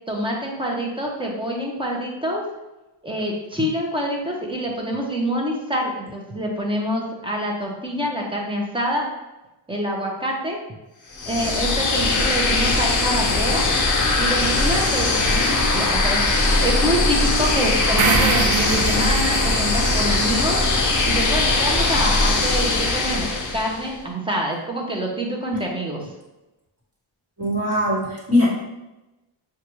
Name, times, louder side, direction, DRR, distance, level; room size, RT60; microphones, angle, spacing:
voice 1, 0.1-2.4 3.0-9.1 9.7-10.6 11.3-13.6 14.2-20.6 21.1-26.0, equal, 10° right, -1 dB, 0.6 m, -26 dB
sound 1, 11.1-23.9, left 3 dB, 40° left, 0.6 m, -20 dB
sound 2, 18.0-22.1, right 6 dB, 80° right, 0.6 m, -26 dB
voice 2, 27.4-28.5, left 1 dB, 30° right, -5 dB, 1.3 m, -21 dB
6.4 x 2.3 x 3.0 m, 1.0 s
wide cardioid pair, 170°, 49 cm